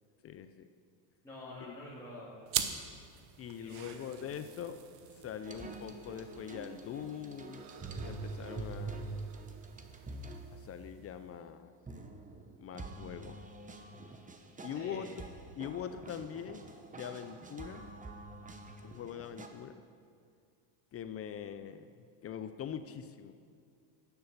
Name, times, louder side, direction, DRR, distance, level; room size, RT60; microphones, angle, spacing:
voice 1, 0.2-0.7 1.6-1.7 3.4-4.8 5.2-7.6 8.0-9.1 10.5-11.7 12.6-13.4 14.6-15.1 15.6-16.6 16.9-17.9 18.8-19.8 20.9-21.9 22.2-23.3, left 8 dB, 30° left, 10 dB, 0.4 m, -42 dB
voice 2, 1.2-2.5 3.6-4.2 14.7-15.0, left 1 dB, 5° left, -8 dB, 1.9 m, -48 dB
sound 1, 2.5-11.4, right 10 dB, 90° right, 1.0 m, -44 dB
sound 2, 5.4-10.4 11.9-19.5, right 3 dB, 15° right, 0.8 m, -46 dB
10.5 x 7.1 x 6.6 m, 2.3 s
cardioid pair, 120°, 50 cm